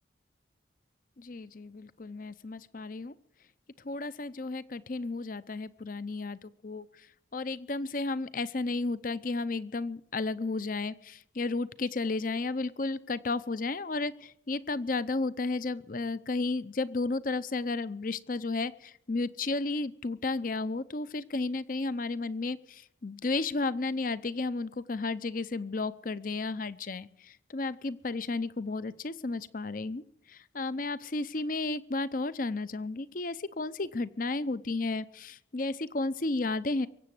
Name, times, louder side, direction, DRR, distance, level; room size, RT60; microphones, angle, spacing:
voice 1, 1.2-3.1 3.8-7.1 7.3-36.9, left 3 dB, 45° left, 17 dB, 0.6 m, -33 dB
23.5 x 8.1 x 7.7 m, 0.72 s
head